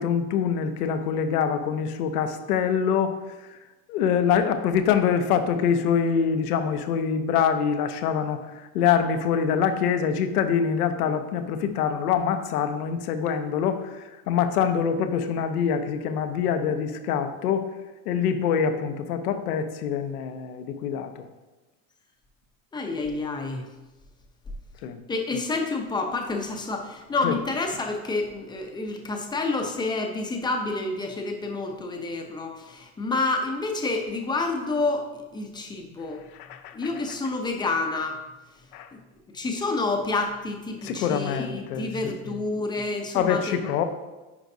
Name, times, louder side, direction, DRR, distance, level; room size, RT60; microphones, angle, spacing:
voice 1, 0.0-3.1 3.9-17.7 18.1-21.3 24.8-25.0 27.2-27.3 36.4-36.8 38.7-38.9 40.8-42.3 43.1-43.8, left 7 dB, 85° left, 8 dB, 0.9 m, -25 dB
voice 2, 22.7-23.7 25.1-36.2 36.7-38.2 38.9-39.0 39.3-43.7, left 3 dB, 10° left, 3 dB, 0.6 m, -29 dB
9.7 x 5.1 x 2.7 m, 1.1 s
supercardioid pair, 135°, 44 cm